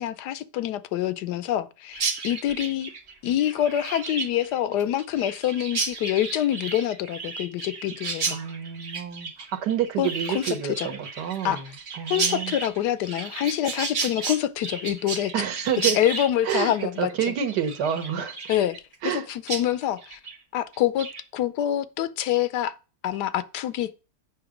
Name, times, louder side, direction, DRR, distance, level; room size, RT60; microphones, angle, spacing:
voice 1, 0.0-2.9 3.2-8.4 10.0-10.1 10.3-10.5 10.8-10.9 11.4-11.6 12.1-15.3 15.9-17.3 18.5-18.8 19.0-20.2 20.5-22.7 23.0-23.9, left 11 dB, 80° left, 1.2 m, -26 dB
Chirp tweet, 1.9-19.2 19.5-19.6 20.0-20.4 20.7-21.2, right 4 dB, 40° right, 1.6 m, -33 dB
voice 2, 8.3-11.7 11.9-12.6 15.3-16.0 16.4-16.7 17.0-18.4 19.0-19.3, right 8 dB, 85° right, 1.7 m, -28 dB
8.0 x 5.9 x 5.0 m
omnidirectional pair, 1.8 m